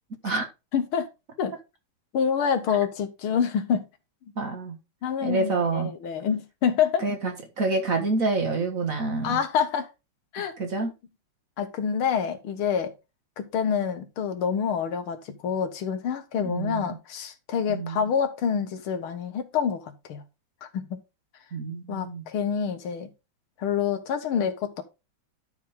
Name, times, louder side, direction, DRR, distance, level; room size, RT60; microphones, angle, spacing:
voice 1, 0.7-1.1 1.4-1.5 2.1-3.8 5.0-7.1 9.2-9.9 10.3-10.5 11.6-12.9 13.4-20.2 20.7-21.0 21.9-23.1 23.6-24.8, left 7 dB, 90° left, 2.0 m, -27 dB
voice 2, 4.4-4.8 5.2-5.9 7.0-9.4 10.4-10.9 16.4-17.0 17.7-18.1 21.5-22.3, right 3 dB, 45° right, 1.7 m, -28 dB
11.5 x 4.9 x 3.6 m
omnidirectional pair, 2.3 m